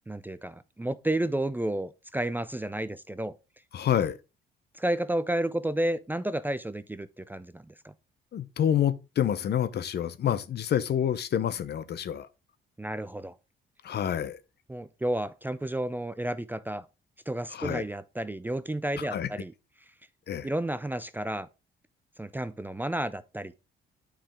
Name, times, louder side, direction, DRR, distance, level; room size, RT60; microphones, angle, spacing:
voice 1, 0.1-3.3 4.8-7.9 12.8-13.3 14.7-16.8 17.3-19.5 20.4-21.5 22.2-23.5, right 1 dB, 10° right, 0.4 m, -31 dB
voice 2, 3.7-4.2 8.3-12.3 13.8-14.4 17.5-17.8 19.0-19.3 20.3-20.5, left 9 dB, 55° left, 0.7 m, -28 dB
8.8 x 5.0 x 3.6 m
cardioid pair, 90°, 20 cm